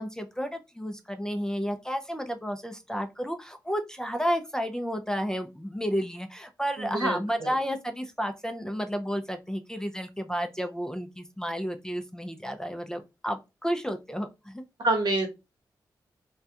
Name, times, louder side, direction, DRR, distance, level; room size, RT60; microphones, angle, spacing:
voice 1, 0.0-14.6, equal, 10° left, 6 dB, 0.4 m, -31 dB
voice 2, 6.8-7.5 14.8-15.3, right 2 dB, 65° right, 4 dB, 0.9 m, -27 dB
2.3 x 2.2 x 2.7 m, 0.25 s
cardioid pair, 55°, 8 cm